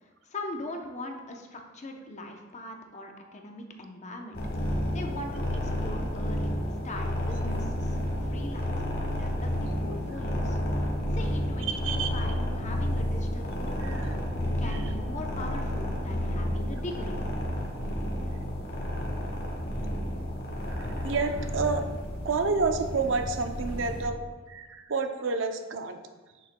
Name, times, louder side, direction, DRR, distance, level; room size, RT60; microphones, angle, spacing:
voice 1, 0.0-4.4 4.9-6.5 6.8-10.6 11.2-14.2 14.6-17.2, left 1 dB, 35° left, 3 dB, 0.7 m, -41 dB
sound 1, 4.3-24.0, equal, 50° left, 1.3 m, -31 dB
voice 2, 13.8-14.1 14.7-14.8 20.7-21.9 22.2-24.2 24.5-26.0, right 4 dB, 70° right, 7 dB, 0.5 m, -29 dB
7.9 x 6.3 x 2.2 m, 1.3 s
head